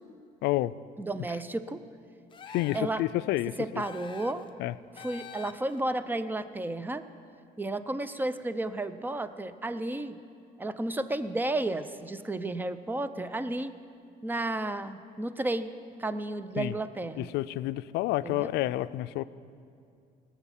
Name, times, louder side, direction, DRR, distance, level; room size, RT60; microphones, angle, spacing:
voice 1, 0.4-0.7 2.5-3.8 4.6-4.7 16.6-16.7 17.2-19.2, left 16 dB, 85° left, 16 dB, 0.4 m, -29 dB
voice 2, 1.0-1.8 2.7-3.0 3.6-4.5 5.0-7.0 7.6-10.2 10.6-13.8 14.2-15.7 16.0-17.3 18.2-18.5, right 2 dB, 10° right, 13 dB, 0.5 m, -32 dB
sound 1, 2.3-3.0 3.8-4.5 5.0-5.8, left 7 dB, 30° left, 0.8 m, -46 dB
18.5 x 7.2 x 7.3 m, 2.5 s
cardioid pair, 110°, 17 cm